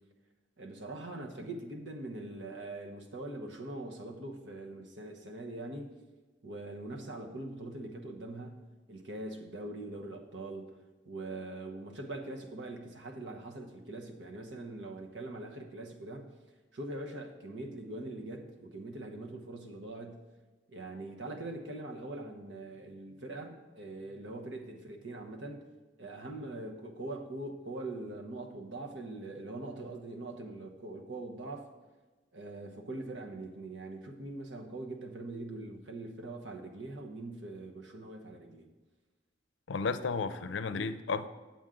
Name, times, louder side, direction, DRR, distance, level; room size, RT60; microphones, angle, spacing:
voice 1, 0.6-5.9 6.4-10.7 11.1-16.3 16.7-20.2 20.7-25.7 26.0-31.7 32.3-38.7, right 2 dB, 85° right, 3 dB, 1.0 m, -42 dB
voice 2, 39.7-41.3, left 4 dB, 90° left, 11 dB, 0.5 m, -33 dB
8.8 x 7.2 x 3.8 m, 1.2 s
head